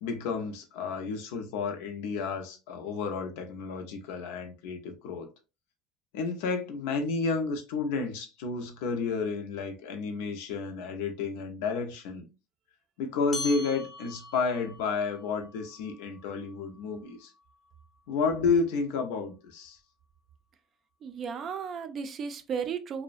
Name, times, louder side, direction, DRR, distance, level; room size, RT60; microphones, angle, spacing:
voice 1, 0.0-5.3 6.1-12.3 13.0-17.3 18.1-19.8, left 4 dB, 80° left, 0.5 m, -31 dB
sound 1, 13.3-18.1, left 2 dB, 15° left, 0.6 m, -43 dB
voice 2, 21.0-23.0, right 6 dB, 45° right, 0.4 m, -34 dB
2.5 x 2.1 x 2.4 m
supercardioid pair, 95°, 0 cm